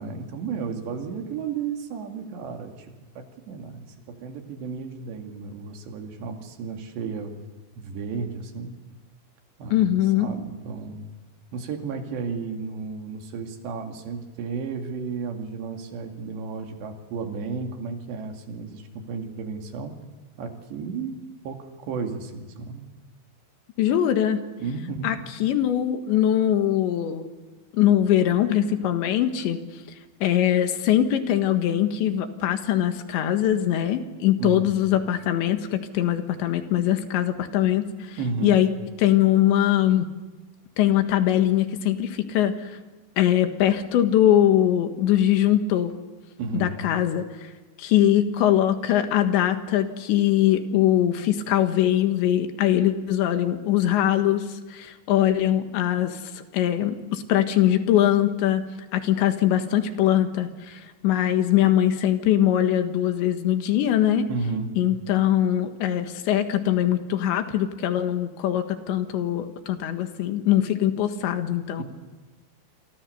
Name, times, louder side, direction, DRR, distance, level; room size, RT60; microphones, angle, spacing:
voice 1, 0.0-7.3 7.8-8.8 9.6-9.9 10.2-11.1 11.5-20.0 20.4-21.2 21.4-22.8 24.6-25.1 34.4-34.7 38.2-38.6 46.4-46.8 64.3-64.7, right 5 dB, 75° right, 4 dB, 4.5 m, -33 dB
voice 2, 9.7-10.3 23.8-24.4 25.0-25.2 25.4-27.3 27.7-29.6 30.2-38.7 39.0-40.1 40.8-42.6 43.2-45.9 46.6-47.5 47.8-58.7 58.9-64.3 64.8-71.8, left 11 dB, 85° left, 7 dB, 3.8 m, -22 dB
28.5 x 23.5 x 6.9 m, 1.2 s
omnidirectional pair, 5.1 m